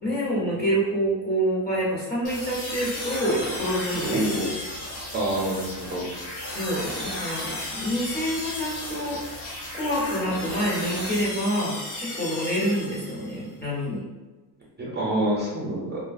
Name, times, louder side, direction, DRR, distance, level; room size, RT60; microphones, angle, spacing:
voice 1, 0.0-4.4 6.5-9.2 9.7-14.0, equal, 25° left, -6 dB, 0.9 m, -27 dB
sound 1, 2.2-13.4, left 1 dB, 80° left, 1.1 m, -34 dB
voice 2, 4.0-4.5 5.1-6.1 14.8-16.0, right 1 dB, 25° right, -4 dB, 0.7 m, -26 dB
2.7 x 2.2 x 2.6 m, 1.2 s
cardioid pair, 125°, 43 cm